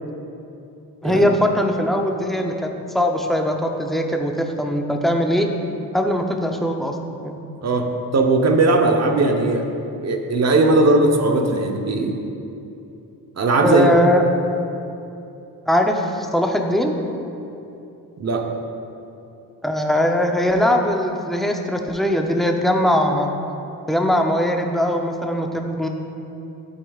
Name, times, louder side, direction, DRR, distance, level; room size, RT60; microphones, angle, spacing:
voice 1, 1.0-5.5 5.9-7.0 7.2-7.4 13.6-14.2 15.7-17.0 19.6-23.3 23.9-25.9, equal, ahead, 2 dB, 0.6 m, -20 dB
voice 2, 7.6-9.7 10.0-12.2 13.4-13.9 18.2-18.5, right 2 dB, 40° right, 3 dB, 0.9 m, -18 dB
12.5 x 8.5 x 2.4 m, 2.8 s
cardioid pair, 125°, 39 cm